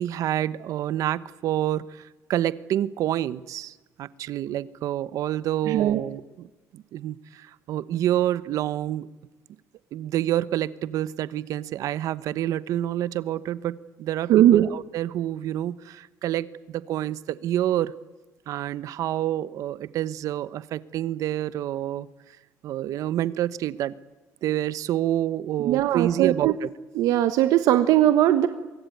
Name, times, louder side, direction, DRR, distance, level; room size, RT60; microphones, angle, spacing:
voice 1, 0.0-6.5 6.7-9.1 9.9-17.9 18.5-22.1 22.6-23.9 24.4-26.7, right 12 dB, 70° right, 17 dB, 1.0 m, -28 dB
voice 2, 5.7-6.0 14.3-14.7 25.6-26.5 26.9-28.5, right 12 dB, 85° right, 10 dB, 1.3 m, -19 dB
24.0 x 22.5 x 9.3 m, 1.2 s
cardioid pair, 145°, 6 cm